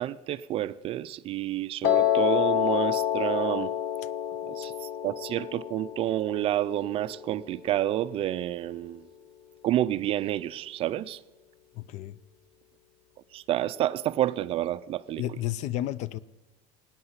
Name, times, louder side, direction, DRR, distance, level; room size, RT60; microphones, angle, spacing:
voice 1, 0.0-3.7 4.5-4.7 5.0-9.0 9.6-11.2 13.3-15.2, right 13 dB, 35° right, 0.4 m, -29 dB
Piano, 1.8-8.0, left 11 dB, 60° left, 1.9 m, -28 dB
voice 2, 11.8-12.2 15.2-16.2, left 13 dB, 45° left, 0.5 m, -32 dB
19.0 x 8.9 x 8.0 m
cardioid pair, 150°, 16 cm